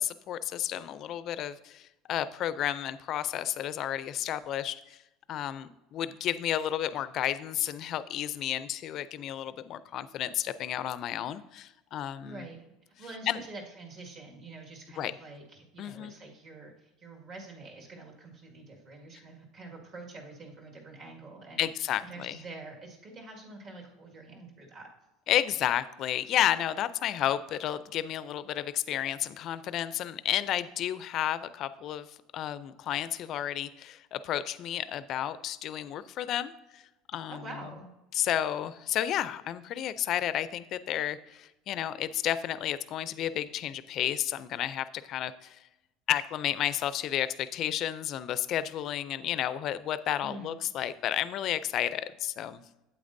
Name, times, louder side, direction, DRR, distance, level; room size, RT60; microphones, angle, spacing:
voice 1, 0.0-5.0 5.3-12.4 13.3-13.4 15.0-15.1 15.8-16.1 21.6-22.4 25.3-32.1 32.3-36.8 37.1-37.4 38.1-45.6 46.1-52.6, left 11 dB, 45° left, 14 dB, 0.4 m, -32 dB
voice 2, 12.2-12.7 13.0-21.7 22.0-24.9 37.3-37.9 50.2-50.5, right 2 dB, 45° right, 0 dB, 1.8 m, -46 dB
8.5 x 8.4 x 2.6 m, 0.94 s
cardioid pair, 135°, 0 cm